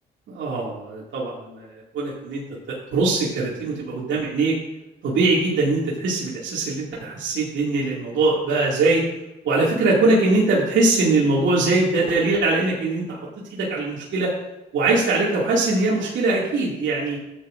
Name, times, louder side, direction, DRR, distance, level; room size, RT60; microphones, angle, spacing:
voice 1, 0.3-4.5 5.0-9.0 9.4-14.3 14.7-17.2, right 3 dB, 70° right, -6 dB, 2.4 m, -22 dB
14.0 x 8.5 x 2.6 m, 0.95 s
cardioid pair, 90°, 20 cm